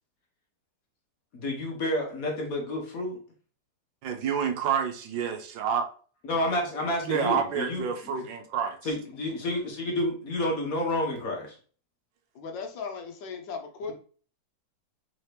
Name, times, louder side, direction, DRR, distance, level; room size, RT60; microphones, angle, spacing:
voice 1, 1.3-3.2 6.2-7.9 8.8-11.5, left 1 dB, 55° left, 0 dB, 1.3 m, -30 dB
voice 2, 4.0-5.9 7.0-8.8, right 7 dB, 80° right, 6 dB, 1.3 m, -28 dB
voice 3, 12.3-13.9, left 5 dB, 75° left, 4 dB, 1.4 m, -37 dB
3.8 x 2.8 x 3.2 m, 0.41 s
omnidirectional pair, 2.0 m